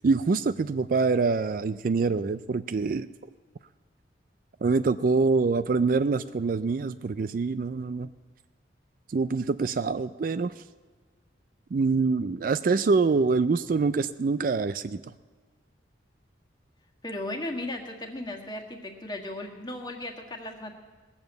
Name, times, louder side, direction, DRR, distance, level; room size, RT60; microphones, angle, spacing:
voice 1, 0.0-3.1 4.6-8.1 9.1-10.5 11.7-15.0, right 4 dB, 50° right, 13 dB, 0.4 m, -25 dB
voice 2, 17.0-20.8, left 1 dB, 20° left, 1 dB, 1.6 m, -36 dB
19.0 x 7.2 x 7.9 m, 1.4 s
head